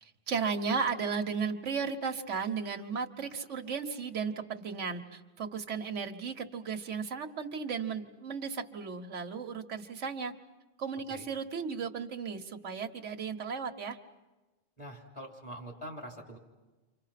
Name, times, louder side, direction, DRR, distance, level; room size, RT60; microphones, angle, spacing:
voice 1, 0.0-10.3 10.8-14.0, right 5 dB, 90° right, 5 dB, 1.5 m, -35 dB
voice 2, 14.8-16.4, equal, 25° left, 0 dB, 3.4 m, -44 dB
29.5 x 25.5 x 5.8 m, 1.2 s
omnidirectional pair, 1.2 m